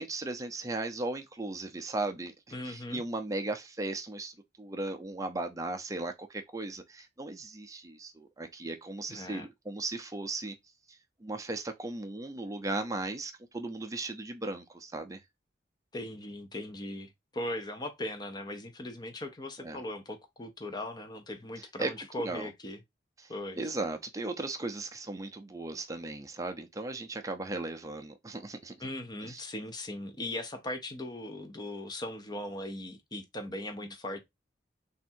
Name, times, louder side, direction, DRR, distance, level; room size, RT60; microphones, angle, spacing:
voice 1, 0.0-2.3 2.6-10.5 10.9-15.2 19.6-19.8 21.8-21.9 22.2-22.5 23.2-23.3 23.6-28.7 29.2-29.4, right 2 dB, 20° right, 0.6 m, -37 dB
voice 2, 2.5-3.0 9.1-9.5 15.9-22.8 23.3-23.6 28.8-34.2, left 1 dB, 20° left, 0.8 m, -39 dB
3.6 x 2.6 x 4.3 m
head